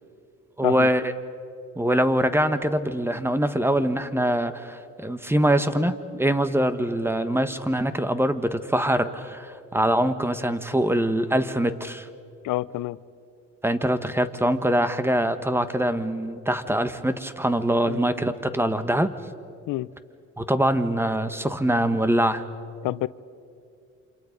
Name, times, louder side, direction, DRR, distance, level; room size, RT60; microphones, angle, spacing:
voice 1, 0.6-1.1 1.7-12.1 13.6-19.1 20.4-22.4, right 1 dB, 10° right, 11 dB, 1.4 m, -23 dB
voice 2, 12.4-13.0 17.9-18.0 19.7-19.9 22.8-23.1, left 17 dB, 85° left, 18 dB, 0.6 m, -27 dB
29.0 x 26.5 x 5.3 m, 2.5 s
cardioid pair, 90°, 30 cm